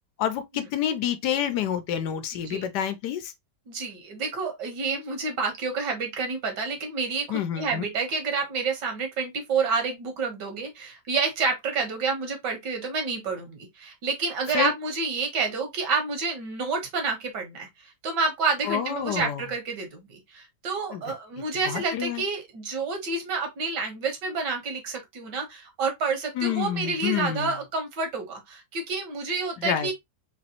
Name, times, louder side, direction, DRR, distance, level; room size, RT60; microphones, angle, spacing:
voice 1, 0.2-3.3 7.3-7.8 14.5-14.7 18.6-19.4 20.9-21.0 21.7-22.2 26.4-27.6 29.6-29.9, left 9 dB, 75° left, 1.2 m, -28 dB
voice 2, 3.7-17.7 18.0-29.9, right 4 dB, 75° right, 1.8 m, -29 dB
4.0 x 3.0 x 2.9 m
omnidirectional pair, 1.9 m